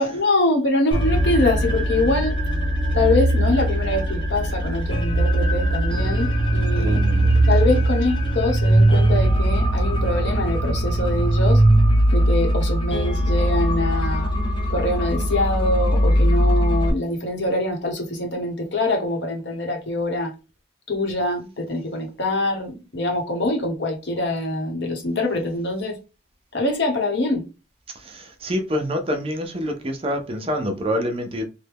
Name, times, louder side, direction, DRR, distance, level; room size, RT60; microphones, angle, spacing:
voice 1, 0.0-2.4 2.9-7.0 7.5-11.6 12.1-14.3 14.7-20.3 20.9-26.0 26.5-27.5, left 2 dB, 65° left, 1.0 m, -24 dB
sound 1, 0.9-16.9, right 1 dB, 25° left, 0.7 m, -20 dB
voice 2, 6.7-7.3 27.9-31.4, equal, 30° right, 0.6 m, -26 dB
3.2 x 2.2 x 3.4 m
head